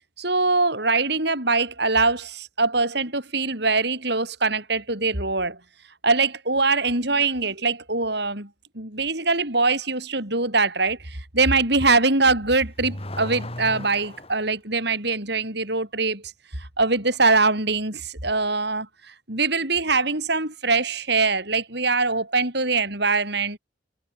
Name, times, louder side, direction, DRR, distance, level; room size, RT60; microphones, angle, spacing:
voice 1, 0.2-5.6 6.0-8.5 8.8-11.0 11.3-16.2 16.8-18.9 19.3-23.6, right 3 dB, 55° right, 7.1 m, -23 dB
Car / Accelerating revving vroom, 12.3-14.5, left 1 dB, 30° left, 7.1 m, -36 dB
head